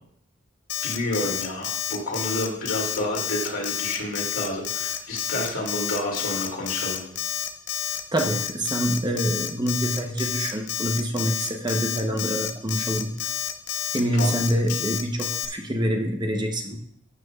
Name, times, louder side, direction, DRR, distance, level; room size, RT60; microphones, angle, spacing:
Alarm, 0.7-15.5, left 9 dB, 55° left, 0.7 m, -29 dB
voice 1, 0.8-7.0 14.1-14.3, left 1 dB, 85° left, -2 dB, 2.7 m, -29 dB
voice 2, 7.9-13.1 13.9-16.8, equal, 20° right, 3 dB, 0.8 m, -26 dB
12.5 x 7.5 x 2.4 m, 0.67 s
head